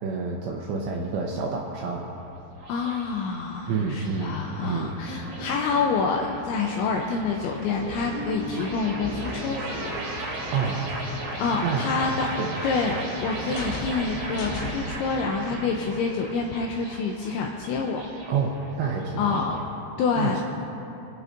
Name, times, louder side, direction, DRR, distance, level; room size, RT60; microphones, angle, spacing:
voice 1, 0.0-2.1 3.7-5.0 10.5-10.8 11.6-11.9 12.4-12.5 18.3-19.6 20.2-20.4, right 5 dB, 80° right, -1 dB, 2.6 m, -28 dB
sound 1, 0.8-19.6, right 1 dB, 40° right, 3.8 m, -37 dB
voice 2, 2.7-10.0 11.4-12.3 12.6-18.0 19.2-19.6 20.0-20.4, left 4 dB, 90° left, 1 dB, 2.7 m, -27 dB
sound 2, 5.1-5.9 7.8-11.6, right 2 dB, 60° right, 3.9 m, -37 dB
sound 3, 9.1-15.0, left 3 dB, 65° left, 3.2 m, -40 dB
28.0 x 9.4 x 2.6 m, 2.9 s
omnidirectional pair, 6.0 m